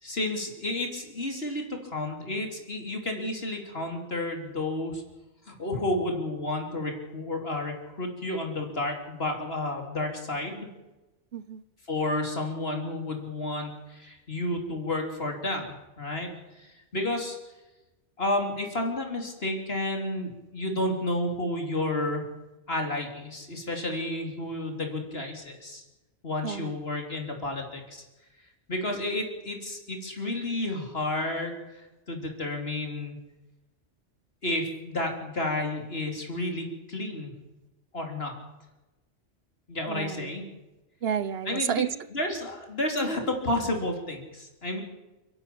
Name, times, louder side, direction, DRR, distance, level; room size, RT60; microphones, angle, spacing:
voice 1, 0.0-5.0 5.5-10.7 11.9-16.3 16.6-17.4 18.2-22.2 22.7-25.8 26.2-28.0 28.7-31.6 32.1-33.2 34.4-37.3 37.9-38.4 39.7-40.5 41.5-44.8, left 1 dB, 60° left, 2 dB, 4.0 m, -31 dB
voice 2, 11.3-11.6 26.4-26.7 39.9-40.3 41.0-41.9, right 8 dB, 60° right, 16 dB, 1.1 m, -30 dB
29.0 x 11.5 x 8.7 m, 1.1 s
omnidirectional pair, 1.2 m